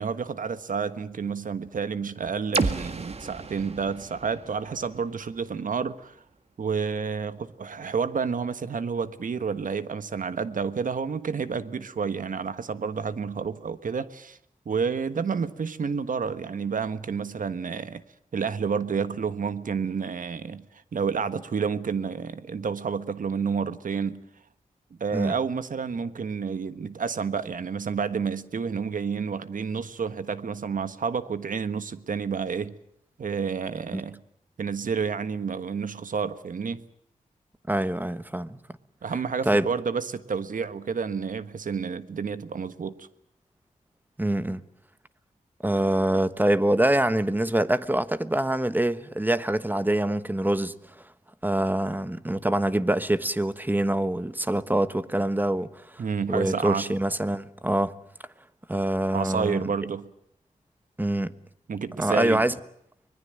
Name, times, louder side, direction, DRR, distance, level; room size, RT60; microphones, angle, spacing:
voice 1, 0.0-6.2 6.6-14.4 14.6-18.0 18.3-24.2 25.0-32.8 33.2-34.2 34.6-36.8 39.0-43.1 56.0-56.9 59.1-60.1 61.7-62.5, right 6 dB, 70° right, 1.4 m, -30 dB
sound 1, 2.5-6.4, right 3 dB, 50° right, 1.8 m, -33 dB
voice 2, 37.7-38.6 39.4-39.7 44.2-44.6 45.6-50.7 51.4-56.0 56.3-57.9 58.7-59.7 61.0-61.3 62.0-62.5, right 1 dB, 15° right, 1.2 m, -25 dB
25.0 x 20.5 x 7.6 m
wide cardioid pair, 75°, 14 cm